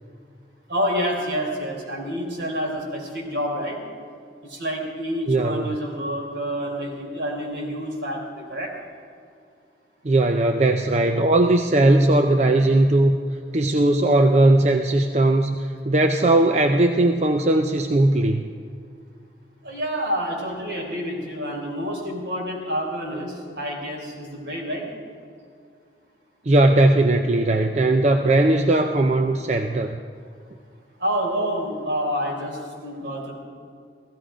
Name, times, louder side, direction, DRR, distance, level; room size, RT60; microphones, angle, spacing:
voice 1, 0.7-3.8 4.4-8.7 19.6-24.9 31.0-33.3, equal, 70° right, -2 dB, 3.9 m, -28 dB
voice 2, 5.3-5.8 10.0-13.2 13.5-18.4 26.4-30.0, right 2 dB, 35° right, 5 dB, 0.5 m, -18 dB
16.5 x 15.0 x 5.1 m, 2.2 s
head